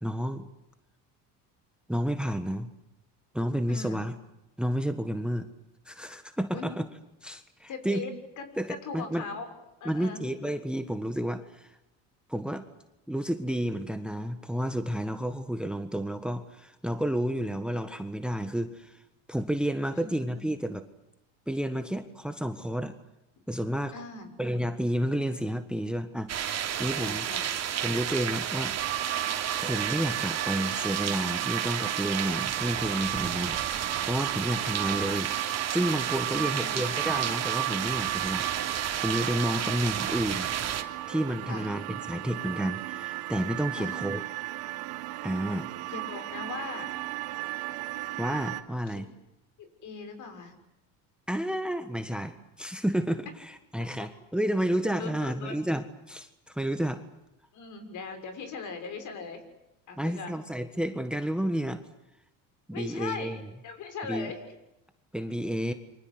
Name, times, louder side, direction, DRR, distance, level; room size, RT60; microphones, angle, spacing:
voice 1, 0.0-0.4 1.9-2.7 3.3-4.1 4.6-5.5 5.8-6.8 7.2-8.0 8.6-9.2 9.8-11.8 12.3-12.7 13.1-19.0 19.3-20.8 21.5-22.9 23.5-23.9 24.4-27.3 27.8-29.1 29.6-35.3 35.7-40.5 41.1-44.2 45.2-45.7 48.2-49.1 51.3-57.0 60.0-61.8 62.7-63.4 64.1-64.3 65.1-65.7, equal, ahead, 10 dB, 1.5 m, -31 dB
voice 2, 3.7-4.1 6.5-6.8 7.7-9.5 9.8-10.3 19.9-20.6 23.4-23.5 23.9-24.4 26.9-27.6 36.3-36.9 41.5-41.7 43.7-43.9 45.9-46.9 48.9-49.1 49.6-50.5 55.0-55.6 57.5-59.4 59.9-60.4 62.7-63.4 63.6-64.5, left 5 dB, 55° left, 8 dB, 6.7 m, -40 dB
sound 1, 26.3-40.8, right 10 dB, 45° right, 3.1 m, -32 dB
sound 2, 28.8-48.6, right 16 dB, 75° right, 2.8 m, -35 dB
28.5 x 25.0 x 8.0 m, 0.90 s
cardioid pair, 110°, 36 cm